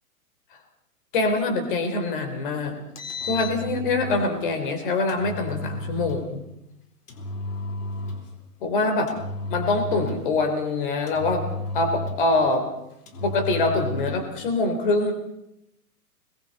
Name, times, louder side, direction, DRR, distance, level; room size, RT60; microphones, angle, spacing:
voice 1, 1.1-2.7 3.2-6.4 8.6-9.2 9.5-11.5 11.7-12.7 13.2-15.1, left 3 dB, 35° left, 5 dB, 4.0 m, -24 dB
Engine, 2.8-4.3 5.1-6.3 7.1-8.4 9.1-10.4 11.1-12.4 13.1-14.3, left 2 dB, 80° left, 4.2 m, -33 dB
29.5 x 21.5 x 4.3 m, 0.81 s
hypercardioid pair, 175°, 45 cm